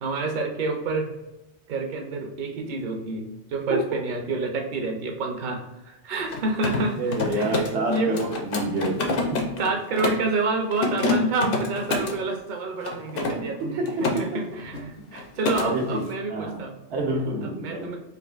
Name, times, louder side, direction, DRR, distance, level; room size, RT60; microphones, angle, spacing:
voice 1, 0.0-1.1 1.7-8.1 9.6-16.7 17.4-18.0, right 3 dB, 50° right, 3 dB, 0.7 m, -29 dB
Mechanisms, 6.2-10.3 10.7-12.2 12.8-14.2 14.5-14.8 15.1-15.7, left 3 dB, 60° left, 0.8 m, -27 dB
voice 2, 7.0-9.5 13.4-14.4 15.0-15.1 15.6-16.6 16.9-17.9, right 2 dB, 80° right, -1 dB, 1.1 m, -28 dB
5.1 x 2.5 x 2.4 m, 0.99 s
omnidirectional pair, 1.1 m